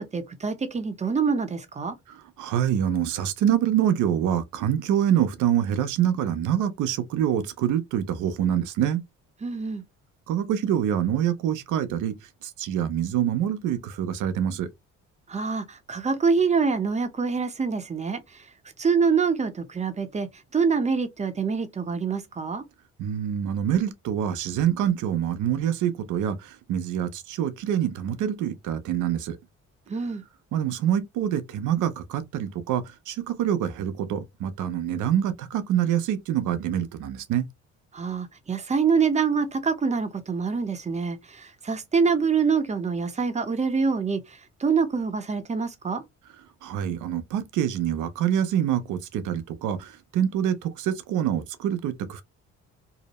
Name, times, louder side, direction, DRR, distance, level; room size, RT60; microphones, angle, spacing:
voice 1, 0.0-1.9 9.4-9.8 15.3-18.2 18.8-22.6 29.9-30.2 37.9-44.2 44.6-46.0, right 5 dB, 25° right, 0.6 m, -25 dB
voice 2, 2.1-9.0 10.3-12.1 12.4-14.7 23.0-29.4 30.5-37.5 46.6-52.2, right 10 dB, 80° right, 0.6 m, -26 dB
2.7 x 2.0 x 2.9 m
cardioid pair, 90°, 30 cm